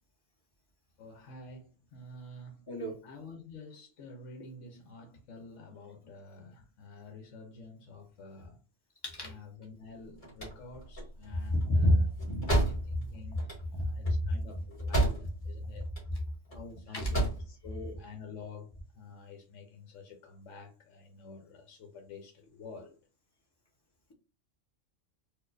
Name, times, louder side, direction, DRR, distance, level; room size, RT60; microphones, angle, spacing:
voice 1, 1.0-2.6 3.0-8.6 9.2-12.1 12.6-13.4 13.7-15.8 16.5-23.0, left 3 dB, 75° left, 1.0 m, -49 dB
voice 2, 2.7-3.0 9.0-9.3 11.5-12.5 12.9-13.0 16.9-17.1, equal, 20° left, 1.0 m, -28 dB
sound 1, 9.9-15.5 15.8-16.6 16.9-17.5, right 2 dB, 40° left, 1.9 m, -32 dB
4.2 x 2.5 x 2.5 m
omnidirectional pair, 1.3 m